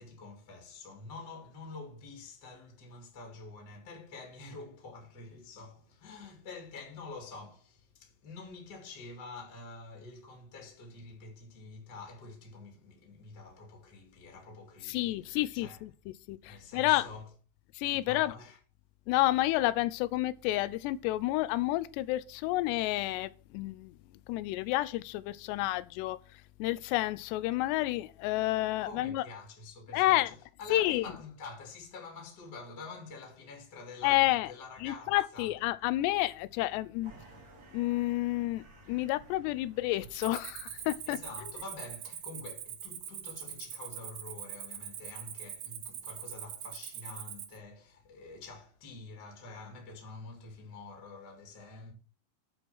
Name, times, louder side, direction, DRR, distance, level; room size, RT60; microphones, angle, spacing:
voice 1, 0.0-15.8 16.5-17.3 17.9-18.6 28.8-35.5 41.0-51.9, left 3 dB, 30° left, 2.2 m, -47 dB
voice 2, 14.8-15.9 16.3-17.1 17.7-18.3 19.1-24.0 24.3-26.2 26.6-29.2 29.9-30.3 30.7-31.1 34.0-34.5 34.8-37.1 37.7-41.2, left 17 dB, 85° left, 2.6 m, -30 dB
sound 1, 37.0-42.4, right 4 dB, 45° right, 3.0 m, -57 dB
Cricket, 40.1-47.6, right 10 dB, 75° right, 1.8 m, -43 dB
8.8 x 4.9 x 7.2 m
omnidirectional pair, 5.3 m